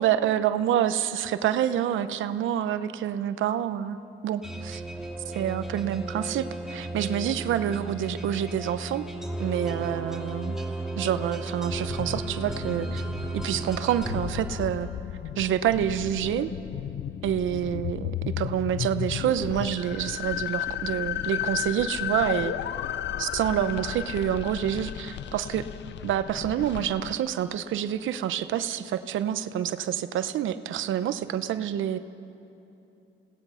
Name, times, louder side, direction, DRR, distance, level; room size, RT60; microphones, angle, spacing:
voice 1, 0.0-4.0 4.2-4.8 5.3-9.0 9.4-10.6 11.0-13.0 13.4-14.9 15.4-16.5 17.2-22.5 23.2-25.7 26.0-32.0, right 10 dB, 80° right, 12 dB, 0.8 m, -27 dB
sound 1, 4.4-15.1, right 2 dB, ahead, 2.8 m, -35 dB
sound 2, 11.7-27.2, left 11 dB, 65° left, 0.6 m, -34 dB
28.5 x 18.0 x 5.7 m, 2.9 s
cardioid pair, 90°, 20 cm